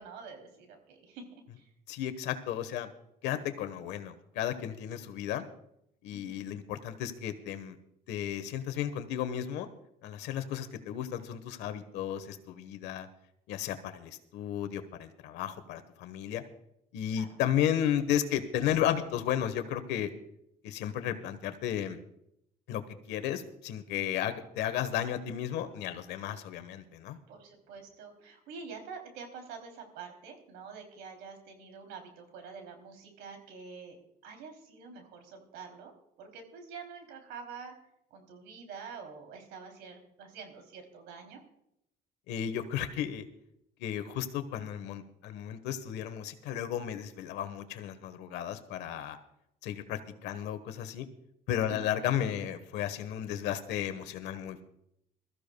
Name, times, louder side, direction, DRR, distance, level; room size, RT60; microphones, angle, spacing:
voice 1, 0.0-1.7 6.1-6.5 17.1-17.4 24.3-24.4 27.3-34.0 34.2-35.9 36.2-37.7 38.1-41.4 51.7-51.9, right 5 dB, 90° right, 4 dB, 3.2 m, -47 dB
voice 2, 1.9-2.9 3.2-5.5 6.0-7.8 8.1-9.7 10.0-13.1 13.5-16.4 16.9-20.1 20.6-22.0 22.7-22.8 23.1-27.2 42.3-43.3 43.8-49.2 49.6-51.1 51.5-54.6, left 10 dB, 90° left, 11 dB, 1.3 m, -33 dB
22.5 x 14.0 x 2.3 m, 0.77 s
cardioid pair, 110°, 17 cm